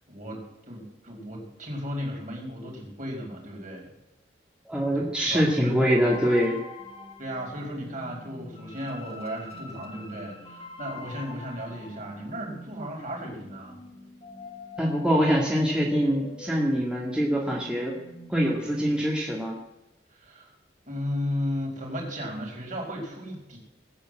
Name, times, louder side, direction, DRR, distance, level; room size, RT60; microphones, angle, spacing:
voice 1, 0.1-3.9 4.9-6.0 7.2-13.8 18.8-19.0 20.1-20.5 20.9-23.6, equal, 45° right, -1 dB, 4.9 m, -35 dB
voice 2, 4.7-6.6 14.8-17.9 18.3-19.6, equal, 5° right, -3 dB, 2.0 m, -24 dB
sound 1, 5.8-18.6, left 3 dB, 35° left, 2.2 m, -44 dB
19.5 x 8.8 x 7.7 m, 0.96 s
head